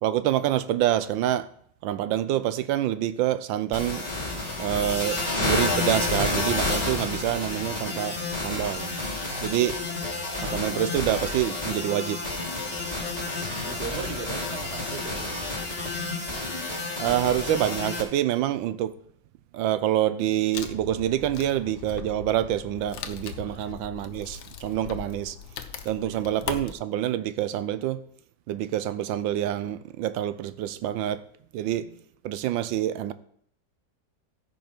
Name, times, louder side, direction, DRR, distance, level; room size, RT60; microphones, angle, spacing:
voice 1, 0.0-1.5 1.8-4.1 4.6-8.2 8.4-8.9 9.4-9.7 10.4-12.2 17.0-18.9 19.5-25.3 25.9-28.0 28.5-31.2 31.5-31.9 32.2-33.1, right 12 dB, 90° right, 1.4 m, -26 dB
sound 1, 3.7-18.0, left 3 dB, 20° left, 2.1 m, -30 dB
voice 2, 13.6-15.4 23.4-23.7 26.0-26.2, right 7 dB, 50° right, 0.7 m, -38 dB
Wood, 20.5-26.7, left 8 dB, 85° left, 1.6 m, -39 dB
15.0 x 5.7 x 4.4 m
omnidirectional pair, 2.1 m